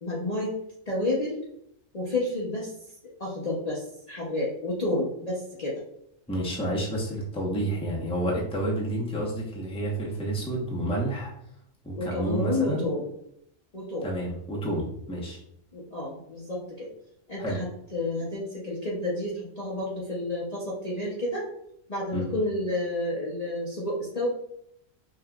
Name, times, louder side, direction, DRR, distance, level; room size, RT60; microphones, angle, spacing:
voice 1, 0.0-0.6 0.9-1.4 1.9-2.7 3.2-3.8 4.1-5.8 12.0-13.1 13.7-14.1 15.7-16.9 17.3-21.5 21.9-24.3, left 1 dB, 35° left, -6 dB, 0.9 m, -30 dB
voice 2, 6.3-11.3 11.8-12.9 14.0-15.4 17.4-17.6 22.1-22.3, right 1 dB, 5° left, -4 dB, 0.9 m, -30 dB
5.7 x 3.1 x 2.4 m, 0.73 s
omnidirectional pair, 1.4 m